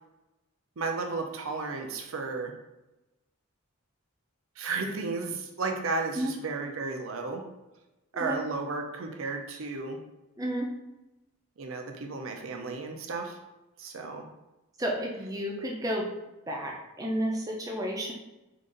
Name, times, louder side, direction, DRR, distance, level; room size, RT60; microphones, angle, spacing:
voice 1, 0.8-2.5 4.6-7.4 8.1-10.0 11.6-13.4 13.8-14.2, right 3 dB, 70° right, 4 dB, 0.6 m, -33 dB
voice 2, 14.8-16.1 16.5-18.1, equal, 15° right, -1 dB, 0.5 m, -31 dB
3.8 x 2.6 x 3.8 m, 1.0 s
head